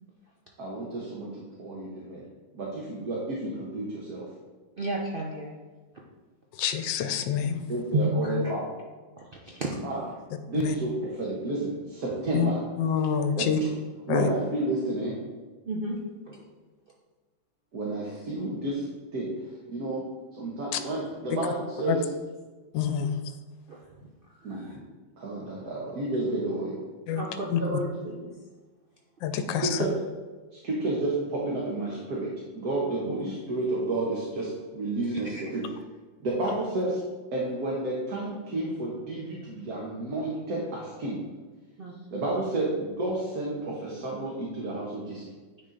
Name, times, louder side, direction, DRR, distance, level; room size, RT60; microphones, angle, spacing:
voice 1, 0.6-2.2 2.5-4.3 7.7-8.6 9.8-10.0 10.5-12.6 13.3-13.5 14.1-15.1 17.7-18.9 19.1-19.3 19.7-20.0 20.4-22.0 24.4-24.8 25.2-26.8 29.6-29.9 30.5-35.7 36.2-37.0 37.3-41.2 42.1-45.3, right 2 dB, 55° right, -4 dB, 1.6 m, -31 dB
voice 2, 4.8-5.5 7.9-8.4 9.5-9.7 15.7-16.0 16.3-16.4 23.7-23.8 24.5-24.8 27.2-28.3 33.0-33.2 41.8-41.9, right 1 dB, 80° right, -2 dB, 0.5 m, -31 dB
voice 3, 6.6-7.6 10.5-10.7 12.3-12.5 12.8-13.6 14.1-14.3 20.7-20.8 21.9-22.0 22.7-23.2 27.1-27.2 27.5-27.6 29.2-29.8, left 8 dB, 75° left, 9 dB, 1.3 m, -27 dB
9.8 x 4.2 x 3.9 m, 1.3 s
omnidirectional pair, 2.1 m